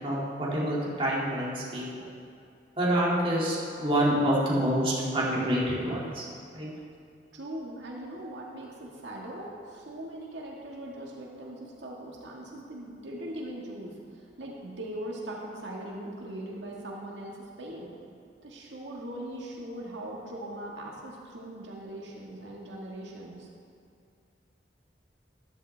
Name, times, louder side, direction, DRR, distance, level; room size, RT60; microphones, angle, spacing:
voice 1, 0.0-1.9 2.8-6.3 6.5-6.7, right 1 dB, 30° right, -6 dB, 2.4 m, -27 dB
voice 2, 7.3-17.9 18.4-23.5, right 1 dB, 85° right, -3 dB, 1.7 m, -40 dB
13.5 x 11.5 x 3.3 m, 2.4 s
head